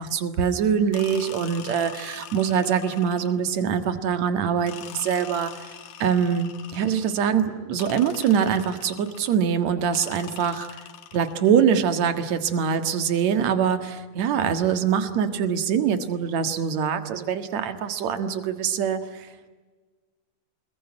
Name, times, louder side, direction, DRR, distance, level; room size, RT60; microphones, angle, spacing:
voice 1, 0.0-5.7 6.0-10.7 11.1-19.3, right 7 dB, 55° right, 9 dB, 2.5 m, -24 dB
sound 1, 0.9-3.5 4.7-7.3 7.8-9.4 9.9-11.6, left 10 dB, 85° left, 3.5 m, -43 dB
27.0 x 21.0 x 9.9 m, 1.4 s
omnidirectional pair, 4.3 m